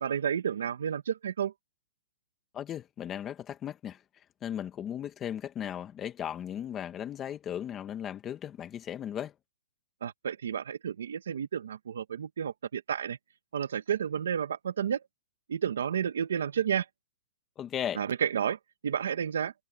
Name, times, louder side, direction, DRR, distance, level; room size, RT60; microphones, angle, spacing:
voice 1, 0.0-1.5 10.0-13.2 13.5-15.0 15.5-16.9 18.0-19.5, right 8 dB, 80° right, 1.4 m, -31 dB
voice 2, 2.5-9.3 17.6-18.0, left 10 dB, 20° left, 1.4 m, -37 dB
hypercardioid pair, 155°, 0 cm